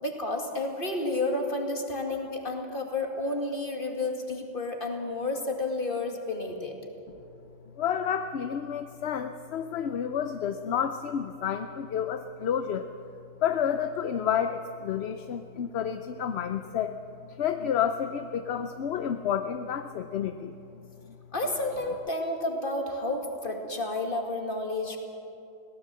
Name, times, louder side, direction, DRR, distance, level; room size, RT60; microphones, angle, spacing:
voice 1, 0.0-6.7 21.3-25.0, left 2 dB, 40° left, 3 dB, 2.3 m, -31 dB
voice 2, 7.8-12.9 13.4-16.9 17.3-20.5, left 8 dB, 60° left, 8 dB, 0.8 m, -30 dB
21.5 x 17.0 x 7.6 m, 2.8 s
omnidirectional pair, 1.4 m